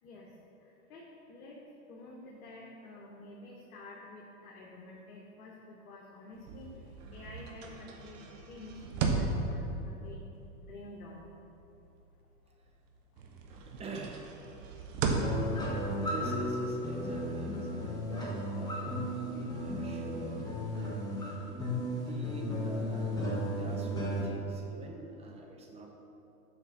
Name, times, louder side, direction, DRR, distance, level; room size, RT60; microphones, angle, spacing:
voice 1, 0.6-1.6 1.9-10.2 10.6-11.2 12.5-12.6 13.5-13.6 18.5-18.8, left 2 dB, 70° left, -3 dB, 1.3 m, -50 dB
sound 1, 6.4-12.8 13.2-18.6, right 3 dB, 55° right, 1.1 m, -37 dB
voice 2, 13.7-14.2 16.0-20.4 21.4-25.9, right 3 dB, 15° right, 1 dB, 0.7 m, -45 dB
sound 2, 15.2-24.2, equal, 10° left, 1.5 m, -35 dB
7.2 x 4.5 x 5.7 m, 2.9 s
hypercardioid pair, 120°, 44 cm